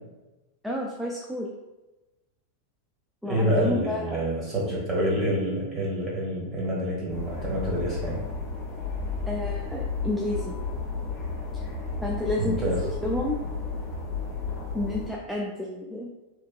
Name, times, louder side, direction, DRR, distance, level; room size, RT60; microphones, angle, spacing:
voice 1, 0.6-1.5 3.2-4.2 9.3-10.6 12.0-12.7 13.0-13.4 14.7-16.1, left 1 dB, ahead, -2 dB, 0.3 m, -30 dB
voice 2, 3.2-8.2 12.4-12.9, equal, 20° right, -4 dB, 1.2 m, -27 dB
sound 1, 7.1-15.1, left 4 dB, 30° left, 1.1 m, -32 dB
3.2 x 3.0 x 2.3 m, 1.1 s
figure-of-eight pair, 90°, 0 cm